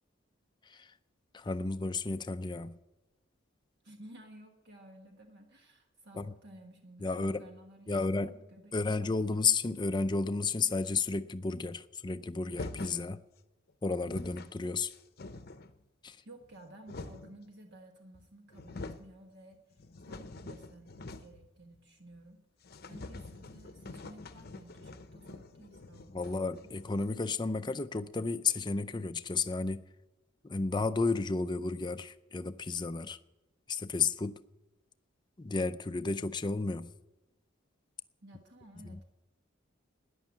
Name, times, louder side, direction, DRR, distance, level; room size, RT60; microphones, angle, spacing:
voice 1, 1.3-2.8 6.2-6.3 7.0-7.4 7.9-8.3 8.7-13.2 13.8-14.9 16.0-16.2 26.1-29.8 30.4-33.2 33.7-34.4 35.4-36.9 38.8-39.0, left 4 dB, 20° left, 0.5 m, -32 dB
voice 2, 3.8-9.1 16.2-26.7 38.2-39.2, right 1 dB, 55° right, 1.4 m, -54 dB
sound 1, 12.5-13.1 13.7-13.8 14.0-14.5 14.9-15.8 16.4-17.4 18.1-18.2 18.5-19.1 19.5-21.5 21.7-21.8 22.2-22.3 22.6-27.1, left 3 dB, 50° left, 0.8 m, -46 dB
13.5 x 10.0 x 8.5 m
head